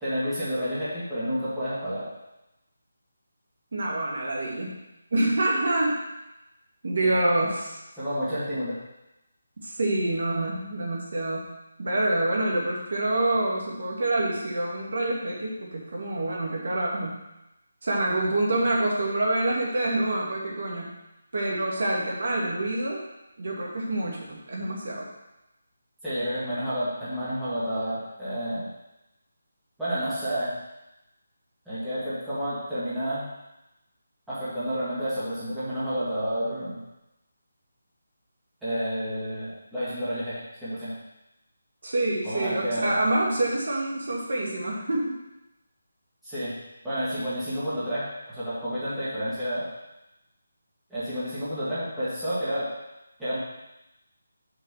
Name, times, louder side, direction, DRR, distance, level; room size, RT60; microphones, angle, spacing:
voice 1, 0.0-2.1 7.0-7.2 8.0-8.8 26.0-28.7 29.8-30.6 31.7-33.3 34.3-36.8 38.6-41.0 42.2-43.0 46.2-46.6 46.8-49.7 50.9-52.7 53.2-53.4, equal, 5° right, -15 dB, 1.8 m, -30 dB
voice 2, 3.7-4.8 5.1-6.0 6.8-7.8 9.6-11.5 11.8-17.2 17.8-21.0 21.3-23.0 23.4-25.1 41.8-45.1, right 1 dB, 50° right, -3 dB, 2.0 m, -26 dB
5.8 x 5.8 x 6.4 m, 0.93 s
figure-of-eight pair, 175°, 0 cm